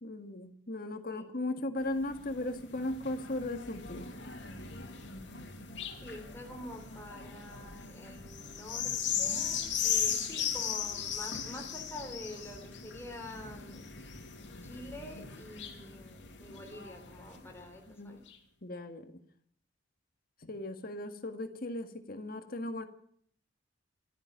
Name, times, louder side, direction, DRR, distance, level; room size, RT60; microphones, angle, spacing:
voice 1, 0.0-4.1 17.9-18.1 18.6-19.1 20.4-22.9, left 1 dB, 50° left, 7 dB, 1.8 m, -37 dB
sound 1, 1.8-17.6 18.3-18.4, left 7 dB, 65° left, 2.9 m, -38 dB
voice 2, 6.0-8.9 9.2-13.9 14.6-18.2, left 1 dB, 15° left, 2 dB, 3.5 m, -47 dB
13.5 x 11.0 x 9.9 m, 0.63 s
head